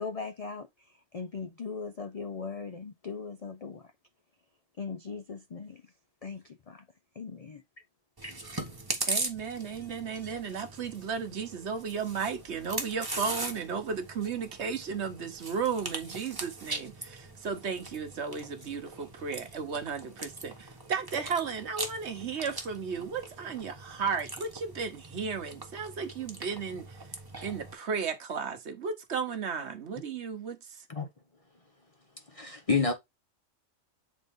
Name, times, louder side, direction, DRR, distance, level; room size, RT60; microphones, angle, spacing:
voice 1, 0.0-3.9 4.8-5.9 6.2-6.9 7.1-7.6 8.2-8.4, left 5 dB, 60° left, 0.4 m, -39 dB
Chewing mastication, 8.2-27.7, right 2 dB, 20° right, 1.0 m, -40 dB
voice 2, 9.0-27.0 27.4-30.6, right 6 dB, 60° right, 1.2 m, -34 dB
voice 3, 32.4-32.9, left 4 dB, 30° left, 0.7 m, -27 dB
7.2 x 4.0 x 3.5 m
omnidirectional pair, 1.4 m